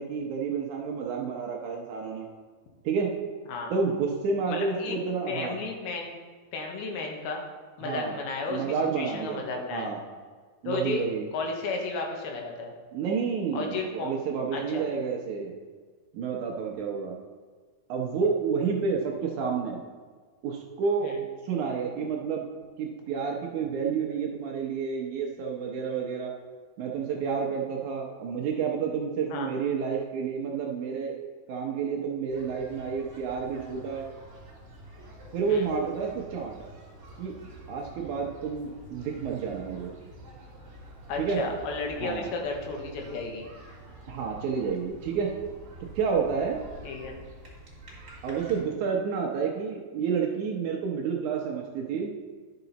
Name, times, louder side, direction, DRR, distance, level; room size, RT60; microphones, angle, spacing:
voice 1, 0.0-2.3 2.8-3.1 3.7-5.6 7.8-8.1 8.5-9.5 9.7-10.0 10.6-11.3 12.9-15.5 16.1-17.2 17.9-19.8 20.4-21.1 21.4-22.5 22.8-26.3 26.8-31.1 31.5-34.1 35.3-36.5 37.2-37.3 37.7-39.9 41.2-41.4 42.0-42.3 44.1-45.3 46.0-46.6 48.2-52.1, right 5 dB, 75° right, 0 dB, 1.8 m, -30 dB
voice 2, 4.5-5.0 5.3-6.1 6.5-7.4 7.8-8.6 9.0-9.9 10.6-11.0 11.3-12.7 13.5-14.1 14.5-14.9 21.0-21.2 29.3-29.5 35.5-35.7 41.1-43.5 46.8-47.2, left 3 dB, 80° left, 1 dB, 3.1 m, -33 dB
sound 1, 32.3-48.6, right 1 dB, 30° right, 2.2 m, -48 dB
11.5 x 5.9 x 4.0 m, 1.5 s
omnidirectional pair, 4.4 m